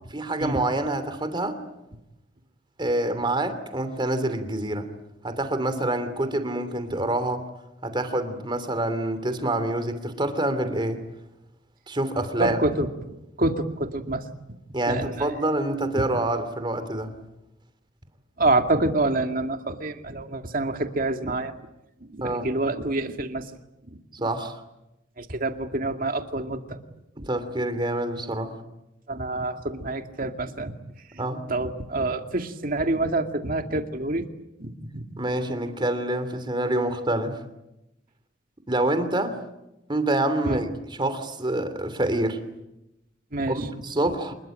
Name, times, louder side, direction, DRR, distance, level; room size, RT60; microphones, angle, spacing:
voice 1, 0.1-1.6 2.8-4.9 5.2-7.5 7.8-11.0 11.9-12.6 14.7-17.1 22.2-22.5 24.2-24.6 27.2-28.6 31.2-31.4 35.2-37.4 38.7-39.4 39.9-42.4 43.5-44.3, right 1 dB, 25° right, 10 dB, 2.9 m, -26 dB
voice 2, 12.4-14.6 14.9-15.3 18.4-21.5 22.0-23.5 23.9-24.3 25.2-26.8 27.2-27.3 29.1-30.7 31.1-31.2 31.5-34.3 34.6-35.1 40.4-40.6 43.3-43.7, right 2 dB, 50° right, 6 dB, 2.3 m, -27 dB
27.0 x 21.5 x 9.1 m, 0.92 s
head